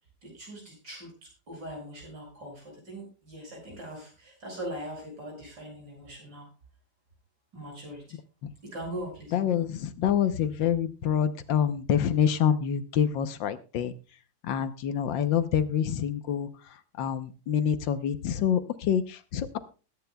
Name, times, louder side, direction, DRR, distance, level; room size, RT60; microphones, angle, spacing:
voice 1, 0.2-6.5 7.5-8.0 8.6-9.3, right 1 dB, 75° right, -1 dB, 7.2 m, -41 dB
voice 2, 9.3-13.9 14.4-16.5 17.0-19.6, left 8 dB, 80° left, 11 dB, 1.6 m, -26 dB
21.0 x 10.0 x 2.2 m, 0.36 s
omnidirectional pair, 2.0 m